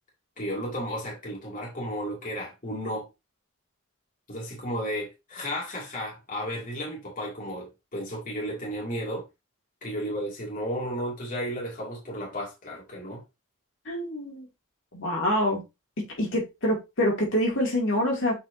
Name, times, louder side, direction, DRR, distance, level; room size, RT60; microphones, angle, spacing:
voice 1, 0.4-3.1 4.3-9.3 9.8-13.2, equal, 40° left, 2.5 m, -33 dB
voice 2, 13.9-14.5 14.9-15.6 16.2-18.4, equal, 60° left, 2.6 m, -26 dB
8.0 x 4.6 x 2.7 m
head